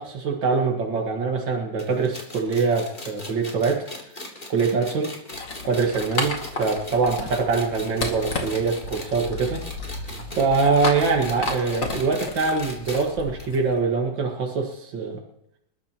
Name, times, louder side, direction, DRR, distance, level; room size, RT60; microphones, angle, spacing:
voice 1, 0.0-3.8 4.5-5.1 5.7-9.6 10.4-15.2, right 4 dB, 85° right, 1 dB, 2.5 m, -24 dB
sound 1, 1.8-13.1 13.4-13.5 13.8-13.9 14.7-14.8, left 1 dB, 25° left, 2.8 m, -39 dB
sound 2, 5.3-13.8, left 3 dB, 80° left, 2.9 m, -33 dB
28.5 x 13.0 x 3.0 m, 0.78 s
omnidirectional pair, 2.0 m